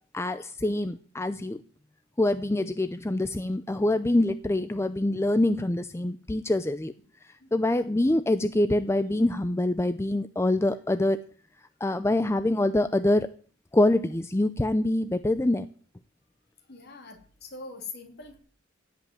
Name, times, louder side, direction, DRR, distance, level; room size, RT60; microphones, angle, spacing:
voice 1, 0.1-1.6 2.2-6.9 7.2-11.2 11.8-13.3 13.7-15.7, left 1 dB, 15° left, 11 dB, 0.5 m, -25 dB
voice 2, 7.4-7.8 16.7-18.4, left 4 dB, 55° left, 4 dB, 3.0 m, -43 dB
16.5 x 5.5 x 9.2 m, 0.43 s
head